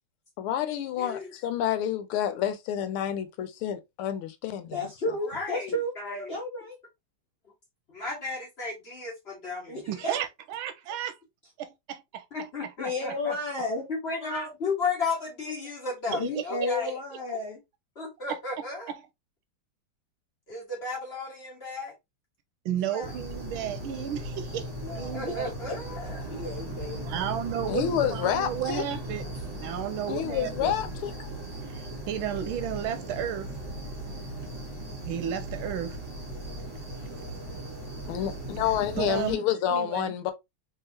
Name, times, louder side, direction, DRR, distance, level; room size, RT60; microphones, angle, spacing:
voice 1, 0.4-4.8 27.7-28.8 30.1-31.1 38.1-40.3, left 10 dB, 85° left, 1.6 m, -29 dB
voice 2, 1.0-1.3 5.3-6.4 7.9-9.8 12.3-13.4 13.9-16.9 18.0-18.9 20.5-21.9 22.9-23.1 25.1-26.3, left 4 dB, 30° left, 1.8 m, -34 dB
voice 3, 4.6-5.9 6.3-6.8 9.7-10.2 12.8-13.8 16.2-17.6 24.8-25.3 26.3-27.3, left 2 dB, 60° left, 0.6 m, -32 dB
voice 4, 9.9-11.2 11.6-12.3 16.1-16.7 17.3-17.4 18.3-18.4 22.6-24.7 25.0-25.5 27.0-29.2 29.6-30.7 31.7-33.5 35.0-36.0 39.0-40.1, right 10 dB, 80° right, 1.3 m, -33 dB
sound 1, 23.0-39.3, right 1 dB, 20° right, 2.0 m, -38 dB
3.7 x 3.5 x 2.8 m
omnidirectional pair, 2.4 m